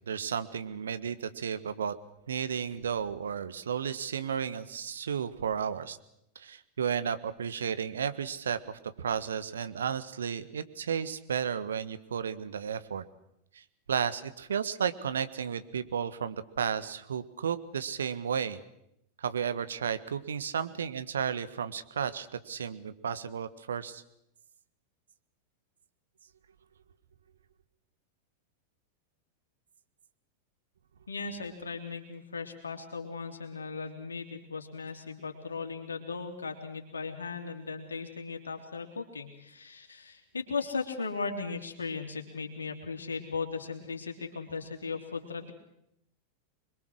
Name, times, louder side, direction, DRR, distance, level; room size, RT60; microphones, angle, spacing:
voice 1, 0.1-2.0 2.3-6.0 6.3-13.0 13.5-18.6 19.2-24.0, right 7 dB, 65° right, 12 dB, 1.4 m, -33 dB
voice 2, 31.1-45.5, left 4 dB, 75° left, 4 dB, 3.2 m, -37 dB
25.5 x 22.5 x 6.4 m, 0.79 s
figure-of-eight pair, 90°, 0 cm